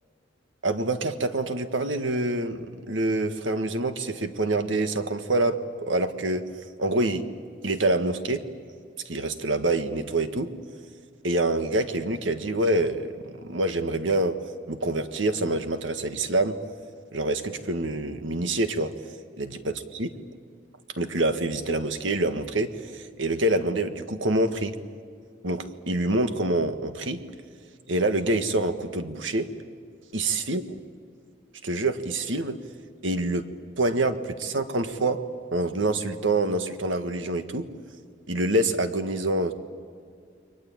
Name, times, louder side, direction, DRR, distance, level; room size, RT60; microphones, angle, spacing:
voice 1, 0.6-6.4 6.8-7.2 7.6-8.4 9.0-10.5 11.2-14.4 14.7-16.6 17.1-18.9 19.4-20.1 21.0-24.7 25.4-27.2 27.9-29.5 30.1-30.6 31.6-32.6 33.0-33.5 33.8-35.2 35.5-37.7 38.3-39.5, right 2 dB, 90° right, 8 dB, 1.7 m, -26 dB
29.5 x 23.0 x 8.8 m, 2.2 s
head